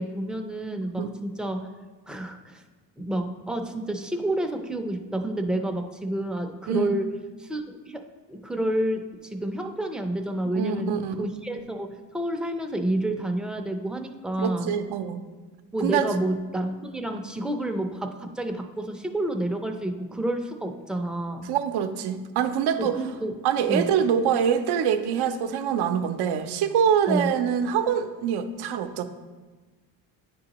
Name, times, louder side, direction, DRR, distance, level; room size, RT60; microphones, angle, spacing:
voice 1, 0.0-1.7 2.1-2.6 3.0-7.1 7.4-8.0 8.3-14.8 15.7-21.5 22.8-23.3 23.7-24.0 27.1-27.3, right 1 dB, ahead, 4 dB, 0.5 m, -29 dB
voice 2, 10.5-11.1 14.4-15.2 15.8-16.2 21.5-23.0 23.4-29.0, right 8 dB, 70° right, 9 dB, 0.6 m, -25 dB
9.7 x 3.9 x 2.9 m, 1.3 s
cardioid pair, 90°, 41 cm